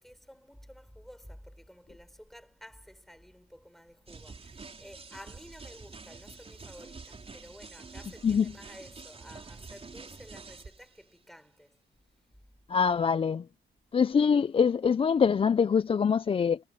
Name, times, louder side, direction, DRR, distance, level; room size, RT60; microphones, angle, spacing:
voice 1, 0.0-11.8, equal, ahead, 5.4 m, -52 dB
sound 1, 4.1-11.0, right 4 dB, 30° right, 4.6 m, -47 dB
voice 2, 12.7-13.4 13.9-16.6, left 6 dB, 30° left, 0.4 m, -24 dB
cardioid pair, 90°, 20 cm